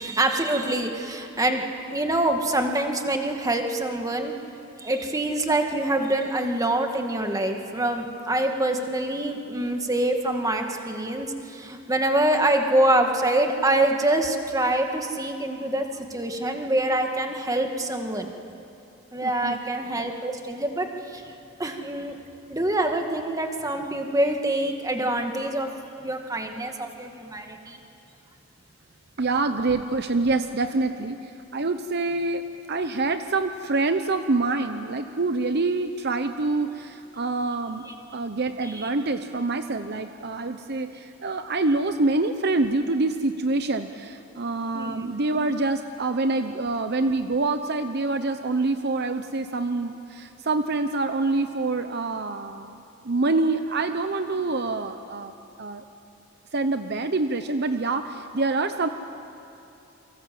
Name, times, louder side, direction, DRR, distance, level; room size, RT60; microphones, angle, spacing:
voice 1, 0.0-1.7 1.9-4.3 4.8-18.3 19.1-21.3 21.6-22.2 22.5-25.7 26.0-27.8 37.9-38.0 38.7-38.9 44.7-45.2, right 1 dB, 15° right, 4 dB, 2.0 m, -25 dB
voice 2, 19.2-19.6 29.2-32.4 32.7-37.9 38.1-52.8 53.0-55.3 55.6-55.8 56.5-58.9, right 3 dB, 55° right, 8 dB, 0.9 m, -26 dB
29.5 x 24.0 x 7.8 m, 2.9 s
head